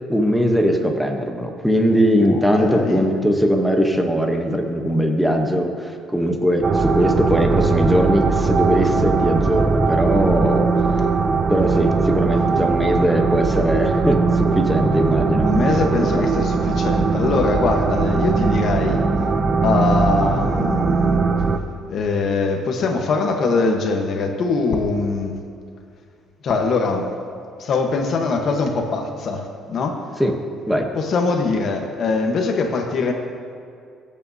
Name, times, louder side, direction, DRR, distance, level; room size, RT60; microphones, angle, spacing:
voice 1, 0.1-11.0 11.5-15.5 16.0-16.2 30.2-30.3 30.7-30.9, equal, ahead, 2 dB, 1.0 m, -20 dB
voice 2, 2.2-3.0 15.4-19.0 19.6-21.2 21.9-25.4 26.4-27.1 27.6-30.0 30.9-33.1, left 4 dB, 45° left, 3 dB, 1.2 m, -22 dB
sound 1, 6.6-21.6, right 4 dB, 25° right, 0.5 m, -19 dB
25.0 x 8.6 x 2.8 m, 2.3 s
cardioid pair, 165°, 0 cm